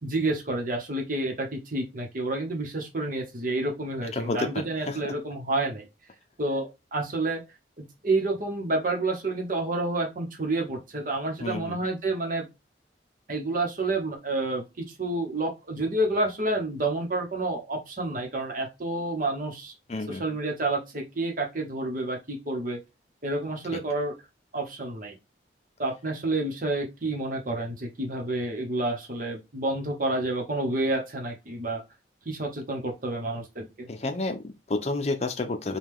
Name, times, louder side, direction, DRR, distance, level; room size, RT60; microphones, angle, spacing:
voice 1, 0.0-5.9 6.4-7.4 7.8-12.5 13.3-19.7 20.1-22.8 23.2-24.1 24.5-25.2 25.8-31.8 32.2-33.9, right 2 dB, 50° right, 1.0 m, -29 dB
voice 2, 4.0-5.0 11.4-11.8 19.9-20.2 23.7-23.8 33.9-35.8, left 2 dB, 40° left, 0.5 m, -30 dB
4.9 x 2.3 x 3.6 m
head